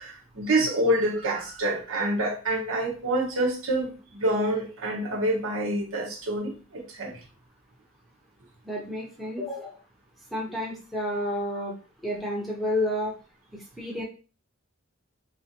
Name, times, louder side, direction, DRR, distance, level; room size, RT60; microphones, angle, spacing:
voice 1, 0.0-7.2, right 1 dB, 65° right, 0.9 m, -27 dB
voice 2, 8.6-9.8 10.3-11.7 12.0-13.1 13.5-14.0, left 1 dB, ahead, 0.8 m, -30 dB
4.0 x 2.6 x 2.8 m
head